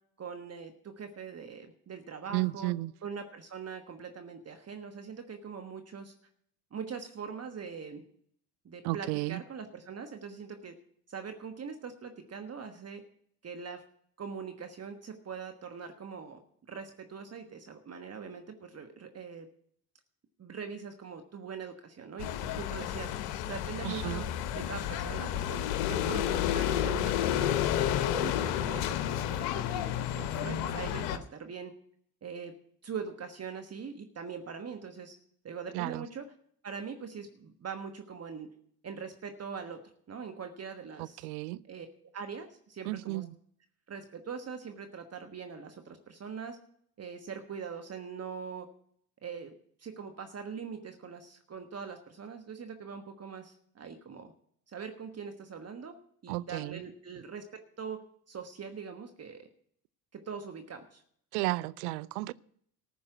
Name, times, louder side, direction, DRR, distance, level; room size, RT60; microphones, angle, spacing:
voice 1, 0.2-2.7 3.0-6.1 6.7-8.0 8.6-10.7 11.1-13.0 13.4-13.8 14.2-16.4 16.7-19.5 20.4-23.1 23.4-24.3 24.5-31.7 32.2-32.5 32.8-35.2 35.4-36.3 36.6-38.5 38.8-39.8 40.1-41.3 41.7-41.9 42.1-43.2 43.9-46.6 47.0-48.7 49.2-49.5 49.8-54.3 54.7-55.9 56.2-58.0 58.3-59.5 60.1-61.0, right 6 dB, 35° right, 1.3 m, -42 dB
voice 2, 2.3-2.9 8.8-9.4 23.8-24.2 35.7-36.1 41.0-41.6 42.8-43.4 56.3-56.8 61.3-62.3, right 20 dB, 75° right, 0.5 m, -33 dB
sound 1, 22.2-31.2, left 11 dB, 70° left, 1.0 m, -31 dB
14.0 x 5.5 x 8.9 m
hypercardioid pair, 65°, 45 cm